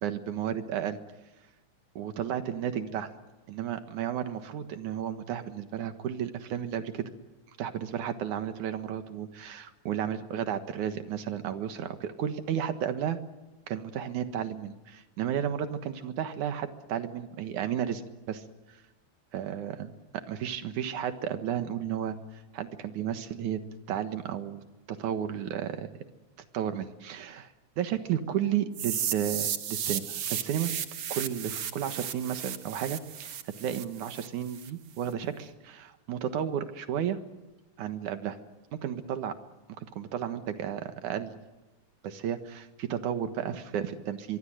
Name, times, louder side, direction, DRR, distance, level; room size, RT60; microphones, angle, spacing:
voice 1, 0.0-1.0 2.0-3.1 3.5-7.1 7.6-13.2 13.7-18.0 18.3-18.4 18.7-18.8 19.3-19.9 20.3-22.2 22.5-23.6 23.9-24.6 24.9-25.9 26.5-30.7 31.1-33.3 33.6-37.2 37.8-38.4 38.8-39.3 39.8-41.4 42.0-44.4, right 9 dB, 85° right, 8 dB, 2.9 m, -33 dB
sound 1, 28.7-34.7, right 9 dB, 55° right, 2.0 m, -34 dB
25.0 x 22.5 x 7.9 m, 1.1 s
omnidirectional pair, 3.4 m